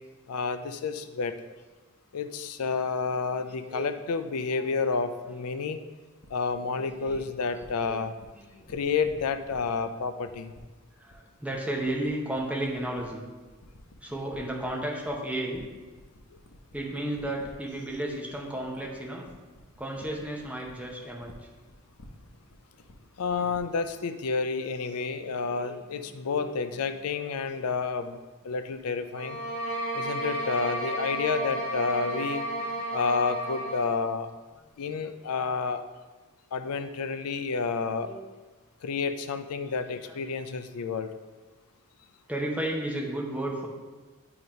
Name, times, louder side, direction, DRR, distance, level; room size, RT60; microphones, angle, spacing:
voice 1, 0.3-1.4 2.1-5.8 6.3-8.1 8.7-10.5 23.2-28.2 28.4-29.4 29.9-32.4 32.9-34.3 34.8-35.8 36.5-38.1 38.8-41.1, left 5 dB, 85° left, 10 dB, 0.4 m, -30 dB
sound 1, 6.2-24.0, left 1 dB, 60° left, 0.8 m, -53 dB
voice 2, 6.8-8.1 8.3-8.7 11.0-13.2 14.0-15.7 16.7-19.3 19.8-21.3 25.3-25.8 26.3-26.4 32.6-32.7 33.6-33.7 38.0-38.2 40.1-40.2 42.3-43.7, right 1 dB, 5° right, -2 dB, 0.8 m, -34 dB
sound 2, 29.1-34.0, right 1 dB, 85° right, 1.1 m, -32 dB
8.0 x 2.9 x 5.1 m, 1.3 s
head